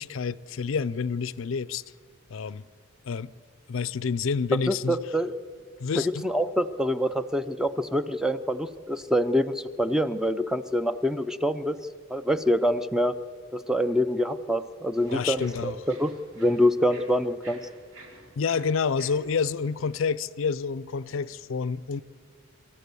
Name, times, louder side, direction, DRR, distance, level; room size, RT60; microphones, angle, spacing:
voice 1, 0.0-1.8 2.3-2.6 3.0-3.3 3.7-5.0 5.8-6.3 15.1-15.8 18.4-22.0, left 5 dB, 65° left, 0.4 m, -28 dB
voice 2, 4.7-5.4 6.0-11.8 12.1-13.1 13.5-17.6, equal, 5° right, 0.4 m, -26 dB
sound 1, 14.9-20.0, right 1 dB, 80° right, 4.0 m, -49 dB
27.5 x 13.5 x 6.9 m
head